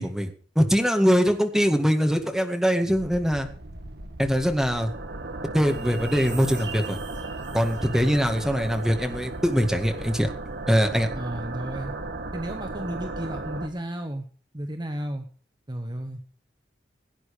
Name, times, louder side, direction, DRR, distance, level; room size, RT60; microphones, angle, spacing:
voice 1, 0.0-3.5 4.2-4.9 5.5-7.0 7.5-10.3 10.7-11.1, equal, 5° right, 4 dB, 1.9 m, -22 dB
sound 1, 2.9-13.7, right 2 dB, 65° right, 1.5 m, -36 dB
sound 2, 5.7-9.1 9.5-9.6, right 5 dB, 85° right, 6.3 m, -43 dB
voice 2, 11.1-11.9 12.3-14.3 14.5-15.3 15.7-16.2, right 1 dB, 25° right, 5 dB, 1.2 m, -33 dB
17.0 x 9.4 x 4.9 m, 0.41 s
head